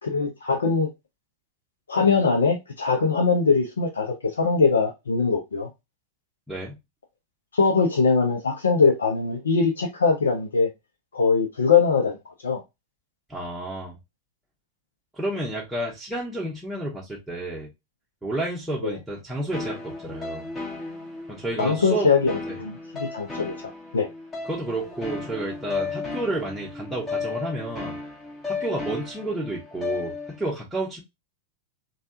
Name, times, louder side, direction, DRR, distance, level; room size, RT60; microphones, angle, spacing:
voice 1, 0.0-0.9 1.9-5.7 7.5-10.7 11.1-12.1 12.4-12.6 18.8-18.9 21.6-23.5 23.9-24.1, left 5 dB, 70° left, 0.6 m, -22 dB
voice 2, 6.5-6.8 13.3-14.0 15.1-17.7 18.2-20.5 21.3-22.1 22.4-22.6 24.4-27.9 28.5-31.0, right 2 dB, 5° right, 0.9 m, -31 dB
sound 1, 19.5-30.5, left 4 dB, 20° left, 1.2 m, -34 dB
3.3 x 2.3 x 2.7 m
figure-of-eight pair, 90°, 0 cm